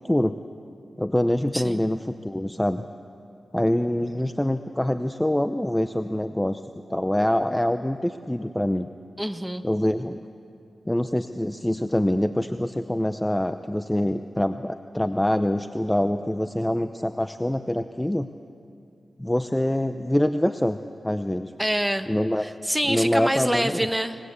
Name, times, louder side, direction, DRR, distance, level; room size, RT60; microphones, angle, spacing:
voice 1, 1.0-2.8 3.5-6.6 6.9-8.9 9.6-10.2 10.9-18.3 19.2-20.8 21.0-21.5 22.1-22.5 22.8-23.8, left 1 dB, 10° left, 9 dB, 0.7 m, -25 dB
voice 2, 9.2-9.6 21.6-22.1 22.4-24.2, equal, 5° right, 8 dB, 1.4 m, -26 dB
26.5 x 19.0 x 8.2 m, 2.6 s
cardioid pair, 60°, 0 cm